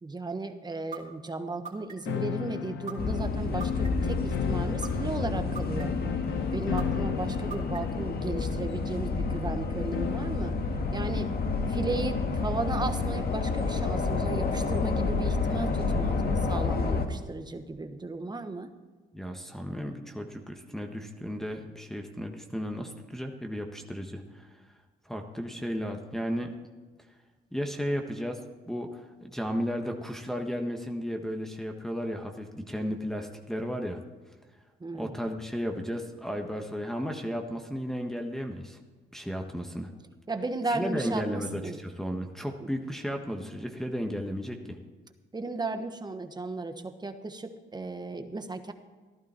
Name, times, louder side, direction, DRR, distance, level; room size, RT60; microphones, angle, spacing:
voice 1, 0.0-5.9 6.5-10.5 10.9-11.3 11.7-18.7 34.8-35.1 40.3-41.7 42.6-42.7 45.3-48.7, right 3 dB, 20° right, 8 dB, 1.3 m, -35 dB
sound 1, 0.9-1.0 1.6-2.2 2.9-3.0 3.6-4.1 4.8-4.9 5.6-6.1 6.8-6.9 7.5-8.0, right 5 dB, 35° right, 3.3 m, -39 dB
sound 2, 2.0-10.4, left 9 dB, 75° left, 1.0 m, -36 dB
sound 3, 3.0-17.1, left 4 dB, 50° left, 1.7 m, -29 dB
voice 2, 19.1-24.5 25.0-26.5 27.5-28.4 28.7-34.0 34.9-38.8 39.1-39.9 40.7-44.8, equal, ahead, 2 dB, 1.4 m, -34 dB
15.0 x 12.0 x 4.5 m, 1.4 s
cardioid pair, 90°, 20 cm